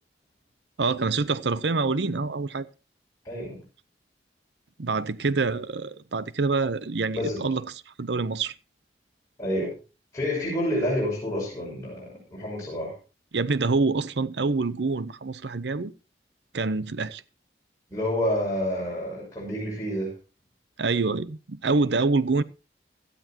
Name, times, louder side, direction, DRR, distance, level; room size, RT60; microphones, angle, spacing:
voice 1, 0.8-2.7 4.8-8.5 13.3-15.9 16.5-17.2 20.8-22.4, right 3 dB, 80° right, 0.7 m, -26 dB
voice 2, 3.2-3.6 7.1-7.5 9.4-9.7 10.1-13.0 17.9-20.1, left 1 dB, 20° left, 6.4 m, -28 dB
17.0 x 13.0 x 2.9 m
head